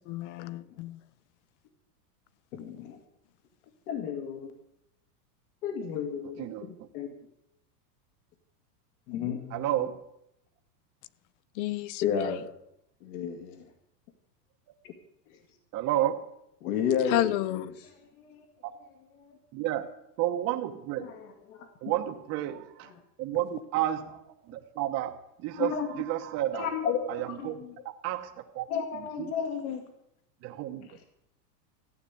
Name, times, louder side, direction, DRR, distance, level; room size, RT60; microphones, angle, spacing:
voice 1, 0.1-1.0 11.5-12.3 17.1-17.7, left 14 dB, 45° left, 0.7 m, -31 dB
voice 2, 2.5-3.0 3.9-4.5 5.6-7.1 9.1-9.6 12.0-12.5 13.0-13.7 14.8-14.9 15.3-15.4 16.6-17.7 18.0-18.4 19.1-19.4 21.0-21.7 22.8-23.0 25.6-25.9 26.5-27.8 28.7-29.8 30.8-31.1, left 7 dB, 65° left, 2.2 m, -33 dB
voice 3, 6.4-6.9 9.5-10.0 15.7-16.3 19.5-19.9 20.2-21.2 21.8-22.9 23.2-24.2 24.5-26.7 27.1-27.6 28.0-28.3 28.5-28.7 29.2-29.3 30.4-30.9, right 13 dB, 30° right, 0.9 m, -31 dB
15.0 x 8.9 x 8.2 m
supercardioid pair, 150°, 49 cm